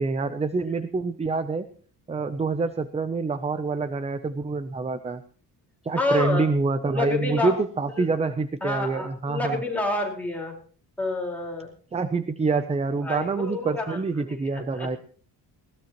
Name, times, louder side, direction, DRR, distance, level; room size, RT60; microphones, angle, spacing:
voice 1, 0.0-1.7 2.1-5.2 5.8-9.6 11.9-15.0, right 3 dB, 15° right, 11 dB, 0.6 m, -26 dB
voice 2, 5.9-6.4 6.9-7.5 8.0-8.1 8.6-10.5 11.0-11.7 13.0-15.0, left 2 dB, 5° left, -1 dB, 4.6 m, -29 dB
20.0 x 18.0 x 3.0 m, 0.42 s
cardioid pair, 165°, 39 cm